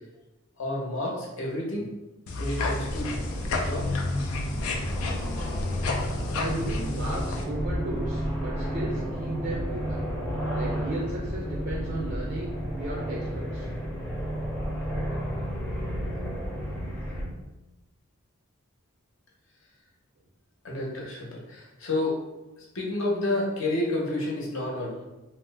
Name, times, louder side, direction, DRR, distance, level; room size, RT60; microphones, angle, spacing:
voice 1, 0.6-1.9 2.4-3.2 3.6-3.9 20.6-22.2 22.6-25.0, left 1 dB, 65° left, -3 dB, 0.8 m, -30 dB
sound 1, 2.3-7.4, left 3 dB, 80° left, 0.4 m, -31 dB
sound 2, 2.9-17.3, equal, 5° left, 0.5 m, -32 dB
voice 2, 5.9-10.0 10.5-13.7, right 2 dB, 50° right, -3 dB, 0.4 m, -35 dB
2.7 x 2.0 x 3.3 m, 1.0 s
head